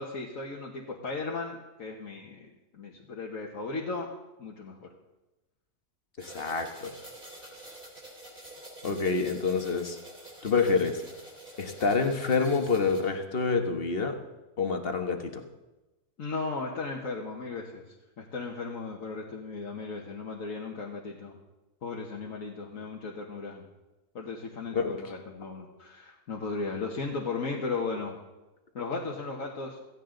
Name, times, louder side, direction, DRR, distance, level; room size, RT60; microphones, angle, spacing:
voice 1, 0.0-4.1 4.4-4.9 16.2-21.4 21.8-23.6 24.2-28.2 28.8-29.8, left 4 dB, 55° left, -2 dB, 1.7 m, -36 dB
voice 2, 6.2-6.9 8.8-10.0 10.4-11.0 11.6-14.2 14.6-15.4 24.7-24.9, left 4 dB, 40° left, 5 dB, 1.4 m, -27 dB
sound 1, 6.2-13.0, right 1 dB, 30° right, 4.2 m, -47 dB
16.5 x 15.0 x 3.9 m, 1.0 s
omnidirectional pair, 1.7 m